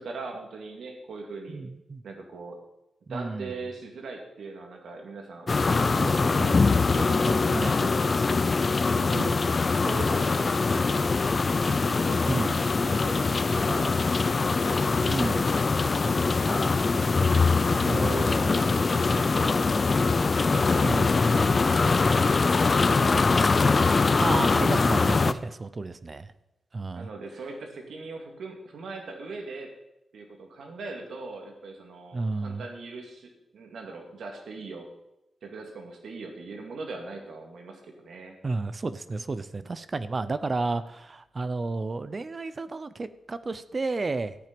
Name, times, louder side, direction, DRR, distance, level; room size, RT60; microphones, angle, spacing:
voice 1, 0.0-1.6 2.0-2.6 3.1-6.6 6.9-8.1 8.4-9.4 9.8-11.2 11.5-13.9 14.2-20.2 20.5-24.0 26.9-29.7 30.1-34.9 35.4-38.4, right 3 dB, 80° right, 2 dB, 2.4 m, -40 dB
voice 2, 1.5-2.0 3.1-3.5 6.0-6.6 7.5-7.9 9.1-9.5 12.3-12.6 15.1-15.5 17.8-18.6 20.8-21.2 24.2-26.3 26.7-27.1 32.1-32.6 38.4-44.4, right 3 dB, 40° right, 13 dB, 0.7 m, -32 dB
sound 1, 5.5-25.3, left 4 dB, 40° left, 0.6 m, -23 dB
14.0 x 8.9 x 5.3 m, 0.90 s
cardioid pair, 80°, 0 cm